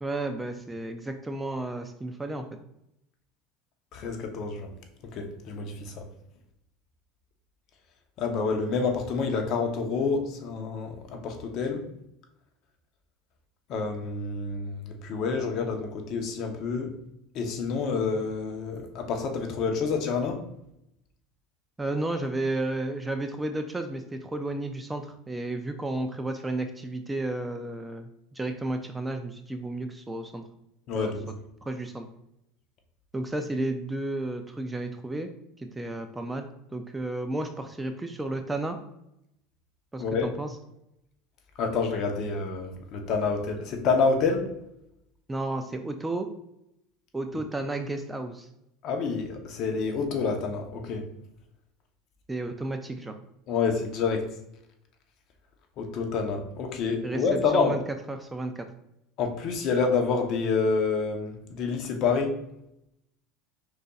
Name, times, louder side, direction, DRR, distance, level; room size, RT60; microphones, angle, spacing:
voice 1, 0.0-2.6 21.8-30.4 30.9-31.2 31.6-32.1 33.1-35.3 35.6-38.8 39.9-40.6 45.3-46.3 47.1-48.5 52.3-53.1 57.0-57.8 58.1-58.7, right 2 dB, 10° right, 6 dB, 0.3 m, -32 dB
voice 2, 3.9-4.7 5.1-6.0 8.2-11.8 13.7-16.9 17.3-20.4 30.9-31.3 40.0-40.3 41.6-44.4 48.8-51.0 53.5-54.3 55.8-57.7 59.2-62.3, left 4 dB, 45° left, 4 dB, 0.8 m, -28 dB
5.1 x 3.9 x 2.3 m, 0.81 s
supercardioid pair, 135°, 0 cm